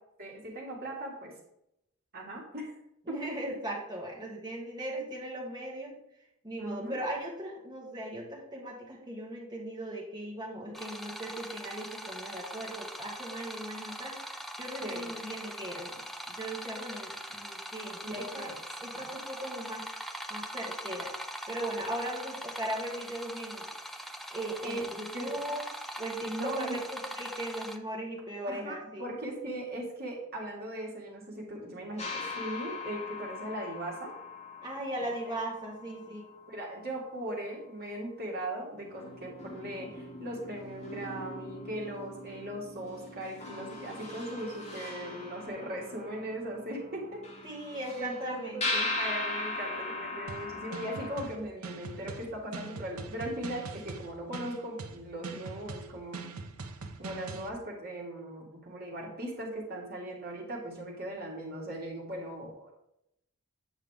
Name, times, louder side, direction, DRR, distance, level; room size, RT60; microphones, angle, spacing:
voice 1, 0.2-1.3 2.1-2.7 3.1-3.4 6.6-7.0 14.8-15.1 18.0-18.6 18.9-19.0 24.6-24.8 25.1-25.6 26.2-26.8 28.5-34.1 35.9-36.0 36.5-47.2 48.0-56.3 57.0-62.7, right 1 dB, 45° right, -3 dB, 2.3 m, -39 dB
voice 2, 3.1-6.0 6.4-14.2 14.6-16.0 16.4-18.5 18.8-19.8 20.3-21.1 21.5-23.7 24.3-25.6 26.0-29.0 34.6-36.2 47.4-48.9, right 1 dB, 20° right, -4 dB, 2.2 m, -38 dB
sound 1, 10.7-27.8, equal, ahead, 0.4 m, -42 dB
sound 2, 32.0-36.9 38.3-38.4 38.8-51.3, left 2 dB, 30° left, 1.5 m, -39 dB
sound 3, 50.3-57.5, right 3 dB, 70° right, 0.7 m, -42 dB
8.5 x 5.5 x 3.6 m, 0.80 s
head